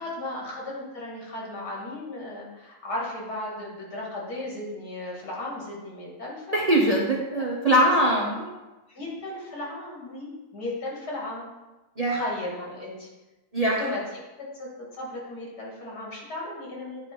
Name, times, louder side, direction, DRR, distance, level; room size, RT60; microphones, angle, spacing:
voice 1, 0.0-6.6 7.3-7.5 8.1-8.5 8.9-11.5 12.1-13.1 13.6-14.2 14.5-17.1, left 2 dB, 80° left, -4 dB, 2.7 m, -35 dB
voice 2, 6.5-8.4 12.0-12.2 13.5-13.8, right 1 dB, 30° right, -3 dB, 0.8 m, -22 dB
9.9 x 3.5 x 5.3 m, 1.1 s
omnidirectional pair, 1.7 m